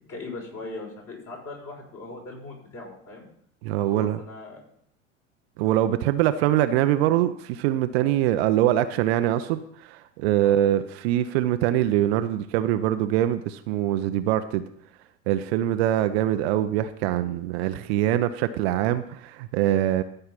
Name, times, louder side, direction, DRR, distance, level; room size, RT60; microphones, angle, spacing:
voice 1, 0.1-3.3 3.8-4.7 10.4-10.6, left 3 dB, 35° left, -1 dB, 5.6 m, -39 dB
voice 2, 3.6-4.2 5.6-14.6 15.3-20.0, right 12 dB, 50° right, 11 dB, 0.7 m, -23 dB
13.5 x 5.6 x 5.9 m, 0.69 s
figure-of-eight pair, 80°, 39 cm